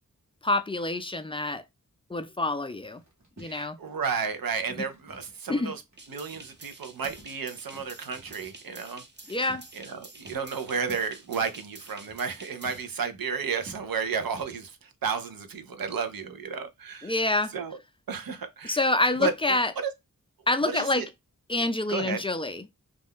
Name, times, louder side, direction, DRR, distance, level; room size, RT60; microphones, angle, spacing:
voice 1, 0.4-1.6 2.1-3.0 3.4-3.8 5.5-5.7 9.3-9.6 17.0-17.5 18.6-19.7 20.5-21.1 21.5-22.6, left 2 dB, 15° left, 0.4 m, -27 dB
sound 1, 2.8-5.6 5.9-6.0 6.3-8.6 9.1-10.0 10.2-14.7, right 2 dB, 55° right, 1.1 m, -52 dB
voice 2, 3.4-5.8 6.1-9.0 9.7-17.1 17.5-17.8 18.1-18.8 19.2-19.6 19.8-19.9 20.6-21.1 21.9-22.2, right 6 dB, 80° right, 0.6 m, -32 dB
sound 2, 6.0-12.8, right 2 dB, 30° right, 0.7 m, -49 dB
2.4 x 2.2 x 3.5 m
wide cardioid pair, 65°, 34 cm